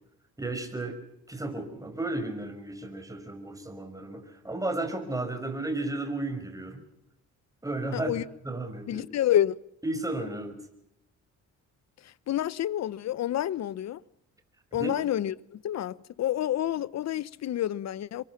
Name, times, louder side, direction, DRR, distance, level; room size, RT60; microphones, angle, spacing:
voice 1, 0.4-1.0 1.3-6.8 7.6-8.2 8.4-9.0 9.8-10.5 14.8-14.9, right 2 dB, 10° right, 5.7 m, -33 dB
voice 2, 7.9-8.2 8.9-9.6 12.0-14.0 14.7-18.2, left 11 dB, 60° left, 0.9 m, -29 dB
27.0 x 23.5 x 5.8 m
cardioid pair, 90°, 30 cm